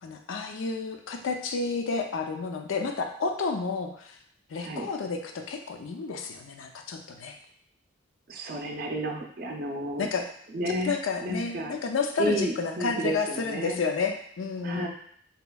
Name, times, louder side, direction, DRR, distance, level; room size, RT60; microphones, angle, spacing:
voice 1, 0.0-4.2 4.5-7.4 10.0-10.3 10.8-14.9, left 4 dB, 75° left, 4 dB, 0.4 m, -31 dB
voice 2, 8.3-10.1 10.5-10.9 11.2-11.8 12.2-13.8 14.6-14.9, right 1 dB, 45° right, 1 dB, 0.5 m, -31 dB
4.1 x 2.9 x 2.2 m, 0.62 s
head